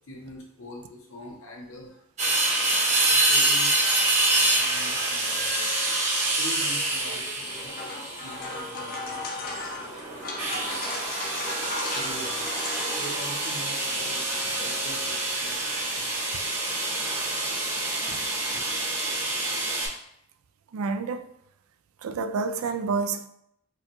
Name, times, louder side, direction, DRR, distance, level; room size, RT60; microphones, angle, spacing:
voice 1, 0.1-2.0 2.5-2.7 3.1-5.9 6.3-7.7 8.2-11.4 11.9-12.6 13.0-16.5 18.1-18.2 18.5-18.6, equal, 75° left, 0.9 m, -44 dB
sound 1, 2.2-19.9, right 2 dB, 30° right, 0.8 m, -27 dB
sound 2, 7.4-15.0, left 2 dB, 40° left, 0.5 m, -36 dB
voice 2, 20.7-21.3 22.0-23.3, right 4 dB, 80° right, 0.3 m, -29 dB
4.7 x 2.2 x 3.0 m
head